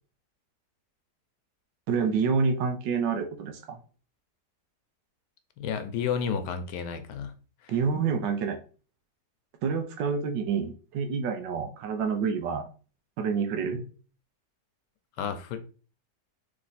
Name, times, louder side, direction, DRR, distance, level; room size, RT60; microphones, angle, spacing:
voice 1, 1.9-3.8 7.7-8.6 9.6-12.7 13.2-13.8, right 5 dB, 80° right, 1.4 m, -28 dB
voice 2, 5.6-7.3 7.6-7.7 15.2-15.6, left 7 dB, 75° left, 1.2 m, -31 dB
3.4 x 3.3 x 4.0 m
omnidirectional pair, 1.9 m